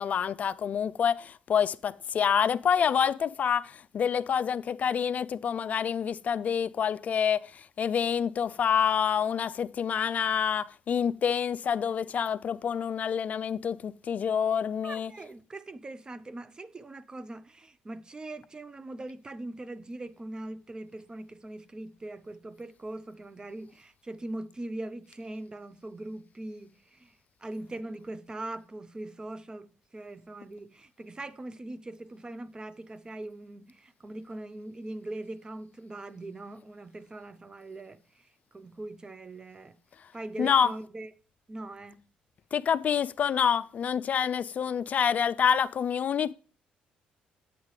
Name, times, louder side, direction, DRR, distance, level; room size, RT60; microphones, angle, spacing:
voice 1, 0.0-15.1 40.4-40.7 42.5-46.3, left 7 dB, 50° left, 0.3 m, -27 dB
voice 2, 14.8-39.8 40.1-41.1 41.5-42.0, right 2 dB, 25° right, 0.6 m, -41 dB
8.2 x 8.1 x 3.2 m
supercardioid pair, 75°, 3 cm